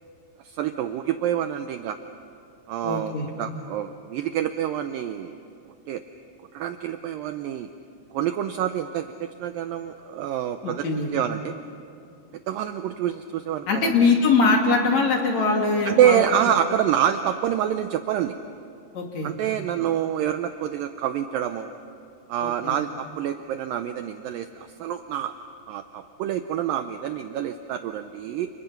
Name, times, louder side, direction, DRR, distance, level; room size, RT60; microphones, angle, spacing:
voice 1, 0.4-2.0 2.7-5.4 5.9-6.0 6.5-7.7 8.1-10.9 11.1-11.5 12.5-13.9 15.9-18.4 19.2-21.7 22.3-25.3 25.7-28.5, right 10 dB, 80° right, 8 dB, 2.1 m, -26 dB
voice 2, 2.8-3.3 10.6-11.1 13.7-16.2 18.9-19.3 22.4-22.8, left 4 dB, 45° left, 1 dB, 3.6 m, -22 dB
30.0 x 29.5 x 5.9 m, 2.5 s
omnidirectional pair, 4.7 m